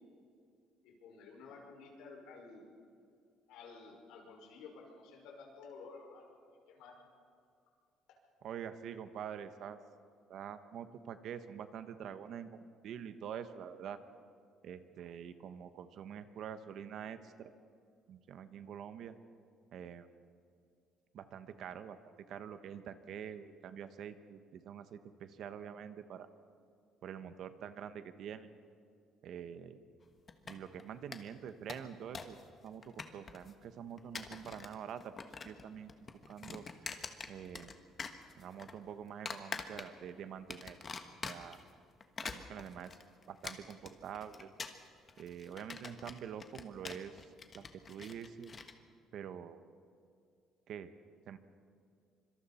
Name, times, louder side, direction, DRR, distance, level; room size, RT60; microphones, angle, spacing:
voice 1, 0.8-2.6 3.5-6.3 6.7-6.9, left 4 dB, 85° left, -1 dB, 5.7 m, -52 dB
voice 2, 8.4-9.8 10.3-14.0 14.6-17.5 18.1-19.1 19.7-20.1 21.1-22.0 22.3-26.3 27.0-28.5 29.2-29.8 30.4-32.4 32.6-35.1 35.4-35.9 36.3-37.7 38.4-40.8 41.2-41.6 42.2-43.0 43.3-44.5 45.2-48.5 49.1-49.6 50.7-50.9 51.3-51.4, right 8 dB, 55° right, 10 dB, 1.1 m, -46 dB
sound 1, 30.3-30.8 31.1-31.2 31.5-32.4 32.7-33.5 34.0-34.7 35.0-35.6 35.9-37.7 38.0-38.7 39.3-40.1 40.5-41.6 42.0-48.7, left 5 dB, 25° left, 1.3 m, -45 dB
25.5 x 25.0 x 4.3 m, 2.4 s
cardioid pair, 150°, 0 cm